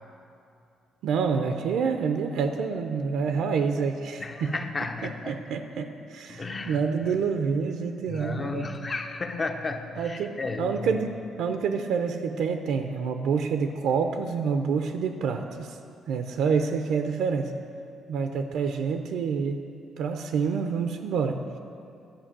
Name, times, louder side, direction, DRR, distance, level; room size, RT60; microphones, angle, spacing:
voice 1, 1.0-4.6 5.3-8.7 10.0-11.1 11.4-15.8 16.1-17.5 18.1-19.6 20.0-21.4, right 5 dB, 80° right, 6 dB, 0.5 m, -27 dB
voice 2, 4.2-5.4 6.3-6.8 7.1-7.2 8.1-11.1, left 3 dB, 30° left, 6 dB, 0.8 m, -33 dB
11.5 x 5.2 x 7.3 m, 2.5 s
cardioid pair, 90°, 0 cm